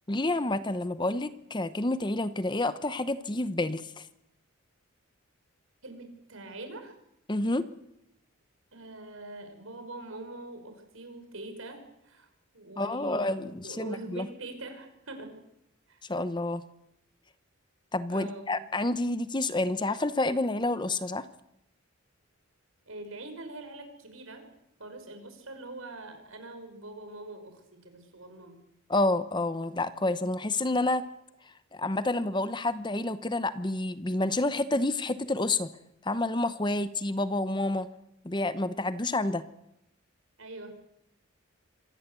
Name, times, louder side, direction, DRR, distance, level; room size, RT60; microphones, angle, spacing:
voice 1, 0.1-4.1 7.3-7.7 12.8-14.3 16.1-16.6 17.9-21.2 28.9-31.1 31.7-35.7 36.0-37.9 38.2-39.4, left 2 dB, 20° left, 13 dB, 0.8 m, -29 dB
voice 2, 5.8-7.0 8.7-12.3 12.5-13.3 13.6-15.3 15.9-16.1 18.1-18.6 22.9-24.5 24.8-28.6 40.4-40.7, right 2 dB, 70° right, 7 dB, 5.7 m, -43 dB
26.0 x 18.5 x 8.2 m, 0.83 s
head